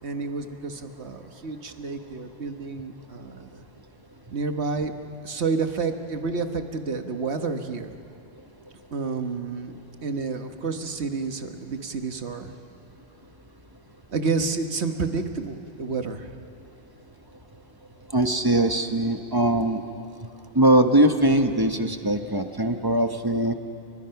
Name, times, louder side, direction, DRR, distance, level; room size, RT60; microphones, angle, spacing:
voice 1, 0.0-3.6 4.3-4.9 5.2-7.9 8.9-9.8 10.0-12.6 14.1-16.3, right 4 dB, 75° right, 6 dB, 1.6 m, -29 dB
voice 2, 18.1-19.8 20.5-23.5, right 1 dB, 20° right, 6 dB, 1.1 m, -21 dB
29.5 x 23.5 x 5.9 m, 2.5 s
omnidirectional pair, 1.1 m